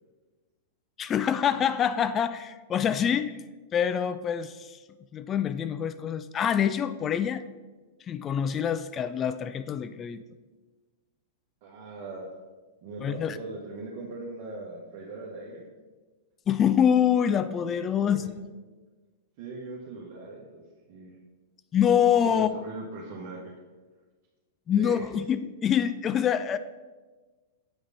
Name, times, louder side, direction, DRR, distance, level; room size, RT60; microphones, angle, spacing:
voice 1, 1.0-3.4 3.7-4.8 5.1-7.4 8.1-10.2 13.0-13.4 16.5-18.5 21.7-22.5 24.7-26.6, left 8 dB, 25° left, 13 dB, 0.3 m, -25 dB
voice 2, 11.6-12.3 12.8-15.7 18.0-18.3 19.4-20.6 20.9-21.2 22.3-23.5 24.8-25.0, right 3 dB, 50° right, -3 dB, 1.2 m, -40 dB
8.1 x 5.0 x 4.1 m, 1.3 s
hypercardioid pair, 105°, 0 cm